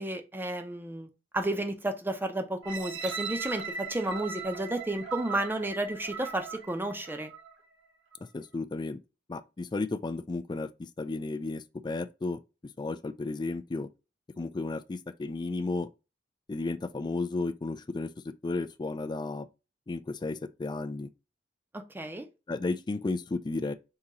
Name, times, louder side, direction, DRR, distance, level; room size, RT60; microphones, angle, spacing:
voice 1, 0.0-7.3 21.7-22.3, right 1 dB, 10° right, 0.6 m, -32 dB
sound 1, 2.6-7.6 8.1-8.2, right 5 dB, 85° right, 1.0 m, -39 dB
voice 2, 8.3-9.0 9.3-12.4 12.8-13.9 14.4-15.9 16.5-19.5 19.9-21.1 22.5-23.7, left 3 dB, 25° left, 0.3 m, -33 dB
3.8 x 2.8 x 4.1 m
head